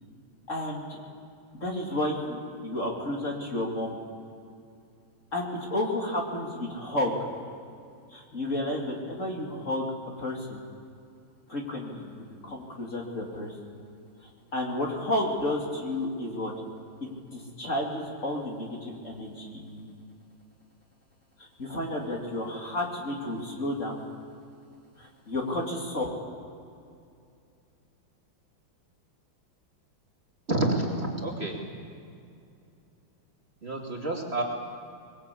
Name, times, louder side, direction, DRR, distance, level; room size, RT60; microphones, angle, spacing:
voice 1, 0.5-1.0 1.6-4.0 5.3-7.1 8.1-9.9 10.2-10.6 11.5-13.6 14.5-16.5 17.0-19.9 21.4-24.0 25.0-26.0, left 1 dB, 35° left, -1 dB, 3.1 m, -31 dB
voice 2, 30.5-31.6 33.6-34.4, right 2 dB, 30° right, -1 dB, 3.1 m, -28 dB
24.0 x 22.0 x 8.5 m, 2.4 s
omnidirectional pair, 2.2 m